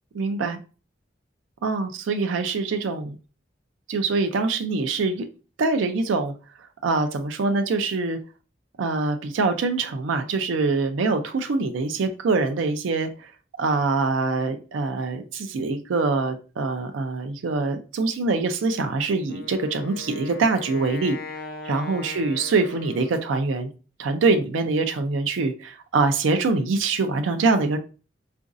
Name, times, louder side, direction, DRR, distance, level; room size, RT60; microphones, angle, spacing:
voice 1, 0.1-0.6 1.6-3.2 3.9-5.2 5.6-6.3 6.8-8.2 8.8-13.3 13.6-21.2 21.7-23.7 24.0-27.8, right 3 dB, 85° right, 0.4 m, -24 dB
Wind instrument woodwind instrument, 19.3-23.5, left 3 dB, 50° left, 0.5 m, -39 dB
3.8 x 2.5 x 2.5 m
head